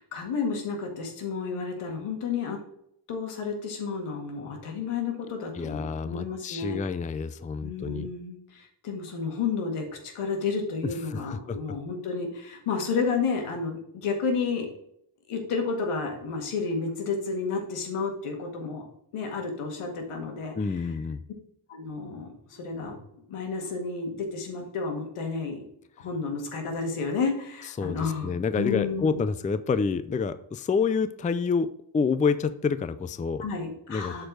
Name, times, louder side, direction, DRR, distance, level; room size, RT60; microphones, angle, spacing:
voice 1, 0.0-2.6 3.1-6.8 7.6-14.7 15.3-18.8 19.1-20.9 21.7-25.7 26.0-29.2 33.4-34.3, left 5 dB, 90° left, 3 dB, 2.0 m, -31 dB
voice 2, 5.5-8.1 11.1-11.6 20.6-21.2 27.8-33.5 33.9-34.3, left 5 dB, 15° left, 13 dB, 0.4 m, -28 dB
7.6 x 4.5 x 4.6 m, 0.73 s
cardioid pair, 85°, 50 cm